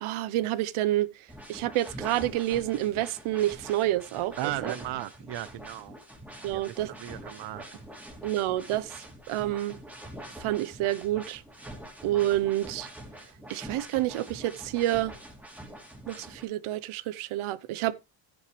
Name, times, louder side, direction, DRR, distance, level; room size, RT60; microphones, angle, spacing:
voice 1, 0.0-1.1 1.5-4.7 6.4-6.9 8.2-8.9 9.3-9.8 10.4-11.4 12.0-12.9 13.5-15.1 16.1-17.9, right 14 dB, 85° right, 1.0 m, -28 dB
sound 1, 1.3-16.5, right 1 dB, 5° right, 2.5 m, -45 dB
voice 2, 4.4-6.0 6.5-7.6, right 14 dB, 60° right, 0.8 m, -36 dB
11.5 x 9.1 x 3.2 m
cardioid pair, 130°, 48 cm